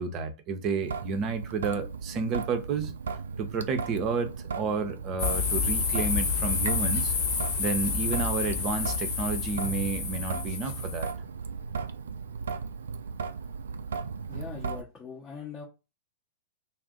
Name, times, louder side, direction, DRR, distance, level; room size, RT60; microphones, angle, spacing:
voice 1, 0.0-2.9 3.4-7.1 7.6-11.1, right 4 dB, 35° right, 0.6 m, -31 dB
Traffic noise roadway noise / Drip / Trickle dribble, 0.8-14.8, right 5 dB, 70° right, 0.3 m, -36 dB
sound 1, 5.2-11.1, left 5 dB, 50° left, 1.0 m, -29 dB
voice 2, 14.3-15.7, left 6 dB, 20° left, 0.7 m, -41 dB
2.4 x 2.0 x 3.7 m
figure-of-eight pair, 105°, 0 cm